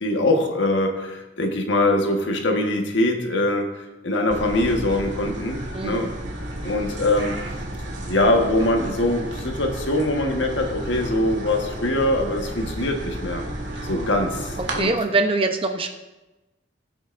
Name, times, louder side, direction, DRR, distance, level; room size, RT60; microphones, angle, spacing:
voice 1, 0.0-3.7 4.0-6.1 6.6-7.4 8.1-13.4 13.8-14.9, left 1 dB, 85° left, 3 dB, 1.5 m, -23 dB
sound 1, 4.3-14.8, right 1 dB, 80° right, 1.9 m, -32 dB
voice 2, 5.7-6.1 14.7-15.9, right 3 dB, 30° right, 6 dB, 0.8 m, -23 dB
20.0 x 7.9 x 2.6 m, 1.1 s
head